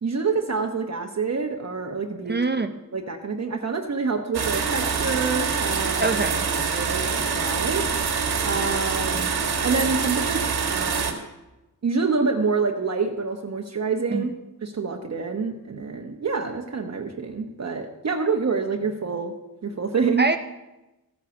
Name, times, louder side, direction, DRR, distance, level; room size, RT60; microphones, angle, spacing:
voice 1, 0.0-2.6 2.9-6.2 6.7-7.8 8.4-9.3 9.6-10.4 10.7-11.2 11.8-14.3 14.6-19.3 19.6-20.3, right 4 dB, 45° right, 2 dB, 1.0 m, -27 dB
voice 2, 2.3-2.7 6.0-6.5 14.1-14.2 20.2-20.4, right 3 dB, 30° right, 8 dB, 0.6 m, -23 dB
sound 1, 4.3-11.1, right 5 dB, 85° right, 1.9 m, -25 dB
14.5 x 9.4 x 5.9 m, 1.0 s
wide cardioid pair, 120°, 37 cm